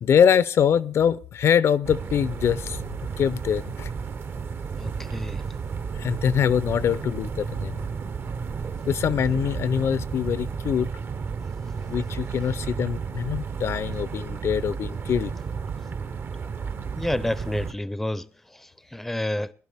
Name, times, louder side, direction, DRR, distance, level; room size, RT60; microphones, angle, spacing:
voice 1, 0.0-2.8 3.2-3.9 6.0-7.7 8.9-10.9 11.8-15.3, left 8 dB, 60° left, 0.5 m, -23 dB
sound 1, 1.8-17.7, right 6 dB, 45° right, 0.7 m, -32 dB
voice 2, 4.8-5.4 17.0-19.5, left 1 dB, 5° left, 0.5 m, -30 dB
21.0 x 12.0 x 3.4 m
cardioid pair, 100°, 5 cm